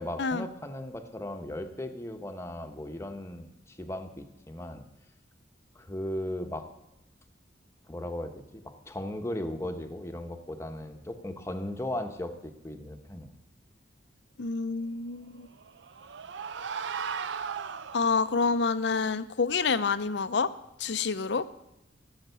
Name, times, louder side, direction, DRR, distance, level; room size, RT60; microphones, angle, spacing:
voice 1, 0.0-4.8 5.7-6.7 7.9-13.3, left 1 dB, 15° left, 6 dB, 0.9 m, -37 dB
voice 2, 14.4-15.5 17.9-20.5 20.8-21.4, left 4 dB, 65° left, 14 dB, 0.6 m, -28 dB
sound 1, 15.5-18.4, right 6 dB, 75° right, 0.5 m, -36 dB
15.5 x 7.3 x 6.8 m, 0.86 s
head